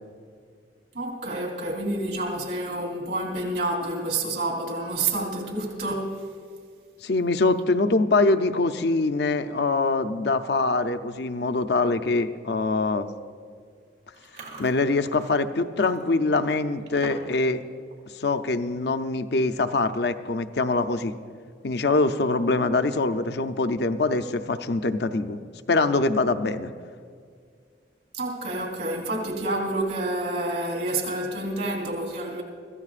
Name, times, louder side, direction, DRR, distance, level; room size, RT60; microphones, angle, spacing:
voice 1, 0.9-6.3 28.1-32.4, right 2 dB, 70° right, 0 dB, 3.6 m, -28 dB
voice 2, 7.0-13.1 14.6-17.6 18.1-21.1 21.6-25.4 25.7-26.7, left 3 dB, 65° left, 9 dB, 0.6 m, -24 dB
Chewing mastication, 14.1-17.4 17.7-18.0 18.4-18.7 19.4-19.5 19.7-20.1 20.5-20.6 22.0-22.6, right 2 dB, 90° right, 3.5 m, -45 dB
25.0 x 15.0 x 2.5 m, 2.1 s
head